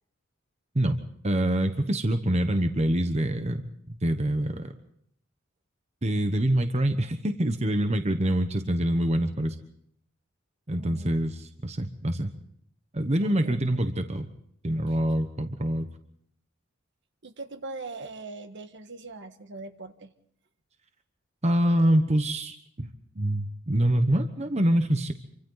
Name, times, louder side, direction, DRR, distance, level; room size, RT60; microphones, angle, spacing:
voice 1, 1.2-3.6 3.9-4.7 6.0-9.6 10.7-12.3 12.9-14.3 14.6-15.9 21.4-22.9 23.2-25.1, right 1 dB, 30° right, 7 dB, 1.2 m, -25 dB
voice 2, 10.7-11.2 13.2-13.6 14.9-15.2 17.2-20.1, right 3 dB, 60° right, 8 dB, 1.5 m, -41 dB
27.0 x 25.0 x 4.0 m, 0.68 s
head